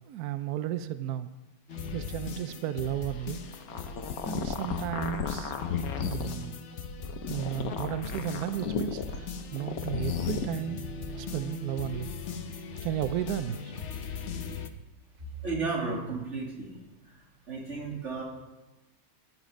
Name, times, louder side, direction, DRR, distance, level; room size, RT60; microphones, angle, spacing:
voice 1, 0.1-1.3 1.9-3.4 4.2-5.6 5.9-6.6 7.3-10.8 11.2-12.1 12.8-13.7, right 12 dB, 85° right, 12 dB, 0.8 m, -34 dB
sound 1, 1.7-14.7, left 4 dB, 70° left, 0.6 m, -39 dB
sound 2, 3.5-6.3 7.0-9.2 9.6-10.4, left 7 dB, 55° left, 1.1 m, -33 dB
voice 2, 15.2-16.8 17.0-18.2, right 4 dB, 30° right, -2 dB, 3.0 m, -34 dB
14.5 x 11.0 x 5.2 m, 1.1 s
omnidirectional pair, 2.4 m